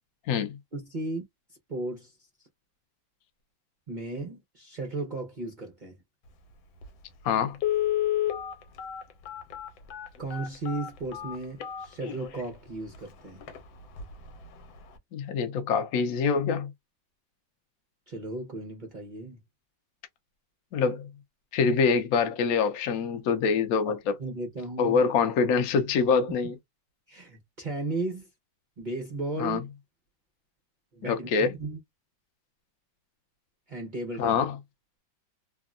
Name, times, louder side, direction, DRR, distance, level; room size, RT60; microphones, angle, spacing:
voice 1, 0.7-1.2 1.7-2.5 3.9-6.0 10.2-13.4 18.1-19.4 23.9-25.0 27.1-28.3 28.8-29.6 30.9-31.8 33.7-34.4, right 2 dB, 75° right, 0.4 m, -35 dB
Telephone, 6.8-6.9 7.5-12.4 12.9-13.0 13.4-13.6 14.0-14.3 14.6-14.7, left 12 dB, 85° left, 1.5 m, -30 dB
voice 2, 7.2-7.6 15.1-16.7 20.7-21.1 21.5-24.2 24.8-26.6 29.4-29.6 31.0-31.5 34.2-34.6, left 5 dB, 65° left, 0.9 m, -25 dB
3.5 x 2.2 x 2.4 m
omnidirectional pair, 2.1 m